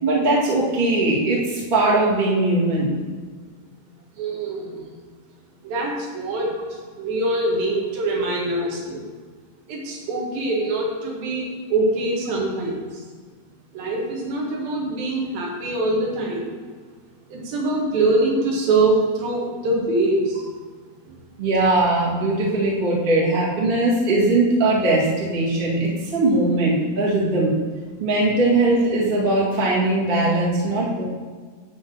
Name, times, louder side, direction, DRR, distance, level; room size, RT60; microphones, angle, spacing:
voice 1, 0.0-2.9 21.4-27.5 28.0-31.0, right 2 dB, 25° right, -6 dB, 0.9 m, -20 dB
voice 2, 4.2-4.9 5.6-6.6 7.0-9.0 9.7-12.9 13.7-16.5 17.3-20.4, right 2 dB, 65° right, -1 dB, 3.2 m, -23 dB
10.0 x 3.8 x 7.2 m, 1.5 s
omnidirectional pair, 4.9 m